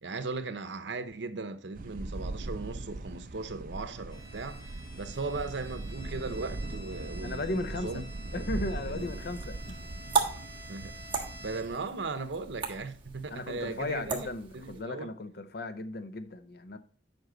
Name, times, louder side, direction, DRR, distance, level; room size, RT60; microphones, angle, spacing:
voice 1, 0.0-8.0 8.9-9.0 10.7-11.0 11.4-14.3 14.6-15.1, right 3 dB, 80° right, 0.8 m, -37 dB
sound 1, 1.7-11.7, right 2 dB, 50° right, 0.6 m, -40 dB
Bowed string instrument, 4.1-11.9, equal, 25° left, 2.0 m, -50 dB
voice 2, 7.2-8.0 8.3-9.8 13.3-16.8, left 2 dB, 60° left, 0.7 m, -36 dB
sound 2, 9.0-14.8, right 5 dB, 30° right, 1.4 m, -36 dB
7.9 x 5.4 x 3.9 m
head